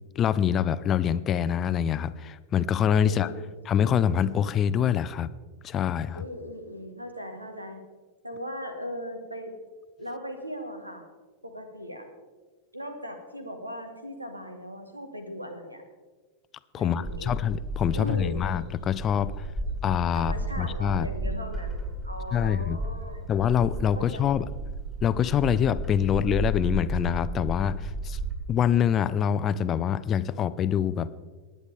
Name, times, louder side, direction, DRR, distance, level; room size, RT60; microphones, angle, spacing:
voice 1, 0.2-3.3 3.7-5.3 5.6-6.2 16.7-19.5 19.8-21.1 22.3-22.8 23.3-24.4 25.0-28.2 28.5-31.1, left 9 dB, 30° left, 15 dB, 0.5 m, -25 dB
voice 2, 3.0-3.5 6.1-7.8 8.2-9.5 10.0-11.0 11.4-12.1 12.7-15.8 16.8-17.4 17.9-18.4 20.1-23.3 24.0-24.3, equal, 85° right, 7 dB, 1.7 m, -38 dB
Bird, 17.0-28.3, right 1 dB, 15° right, 4.2 m, -33 dB
19.0 x 9.4 x 3.6 m, 1.3 s
figure-of-eight pair, 90°, 0 cm